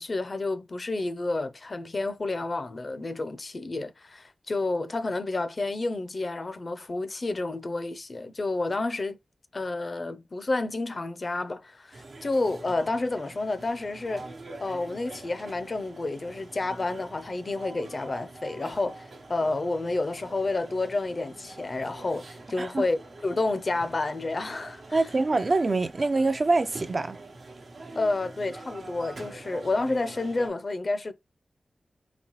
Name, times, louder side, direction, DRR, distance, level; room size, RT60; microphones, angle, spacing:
voice 1, 0.0-9.2 9.5-14.3 14.6-25.0 27.9-31.1, left 2 dB, 50° left, 0.5 m, -30 dB
sound 1, 11.9-30.5, right 2 dB, 80° right, 0.8 m, -45 dB
voice 2, 24.9-27.2, right 3 dB, 50° right, 0.4 m, -25 dB
4.0 x 3.3 x 3.0 m
cardioid pair, 60°, 0 cm